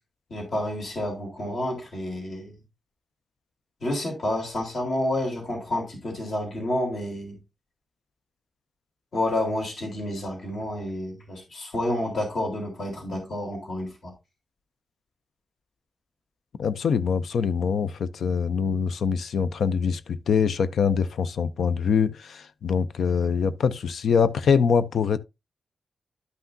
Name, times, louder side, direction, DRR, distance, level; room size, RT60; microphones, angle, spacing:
voice 1, 0.3-2.5 3.8-7.4 9.1-14.1, left 1 dB, 60° left, 3.8 m, -29 dB
voice 2, 16.6-25.2, left 6 dB, 85° left, 0.5 m, -24 dB
12.0 x 5.8 x 2.7 m
wide cardioid pair, 125°, 0 cm